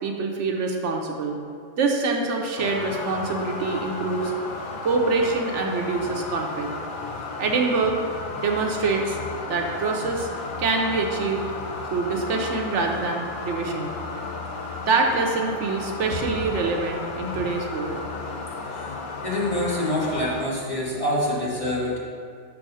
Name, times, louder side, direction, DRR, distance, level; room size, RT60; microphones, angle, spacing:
voice 1, 0.0-1.4 1.8-4.3 4.8-6.8 7.4-8.0 8.4-9.2 9.5-10.3 10.6-11.5 11.9-13.9 14.8-18.0, right 3 dB, 70° right, 2 dB, 1.0 m, -25 dB
sound 1, 2.6-20.4, left 3 dB, 50° left, 0.7 m, -34 dB
voice 2, 19.2-22.0, left 1 dB, 25° left, -7 dB, 1.5 m, -26 dB
6.1 x 4.6 x 5.5 m, 2.2 s
omnidirectional pair, 1.3 m